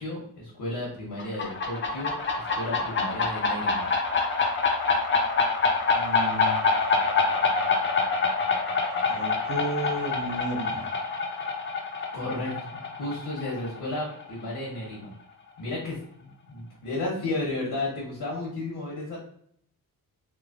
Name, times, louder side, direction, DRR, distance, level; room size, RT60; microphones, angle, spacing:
voice 1, 0.0-3.9 12.1-15.1 15.6-19.2, left 2 dB, 75° left, -4 dB, 1.0 m, -33 dB
sound 1, 1.2-14.6, left 4 dB, 35° left, 0.4 m, -26 dB
voice 2, 5.9-6.6 9.1-11.0, right 2 dB, 60° right, 0 dB, 0.8 m, -33 dB
3.0 x 2.1 x 2.4 m, 0.63 s
wide cardioid pair, 105°, 38 cm